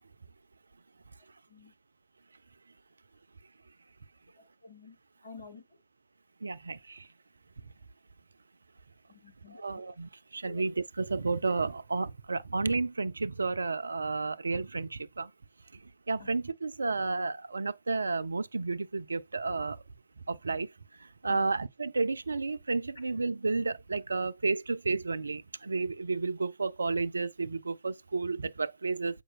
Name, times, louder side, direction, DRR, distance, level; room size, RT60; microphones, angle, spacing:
voice 1, 4.6-5.0 5.2-5.6 9.1-9.6 10.4-10.6 16.2-16.3 21.3-21.5, left 5 dB, 75° left, 1.5 m, -49 dB
voice 2, 6.4-7.0 9.6-15.3 16.1-19.8 20.3-20.7 21.2-29.2, right 3 dB, 80° right, 0.4 m, -31 dB
7.6 x 5.1 x 2.4 m
figure-of-eight pair, 115°, 0 cm